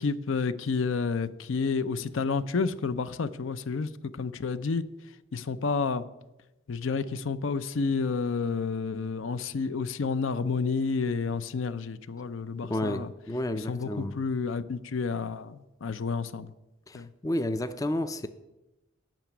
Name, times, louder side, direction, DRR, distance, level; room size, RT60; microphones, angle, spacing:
voice 1, 0.0-4.8 5.3-6.0 6.7-13.1 13.5-16.5 16.9-17.1, left 4 dB, 70° left, 0.5 m, -30 dB
voice 2, 12.6-14.2 16.9-18.3, left 1 dB, 15° left, 0.4 m, -31 dB
9.1 x 6.0 x 8.3 m
head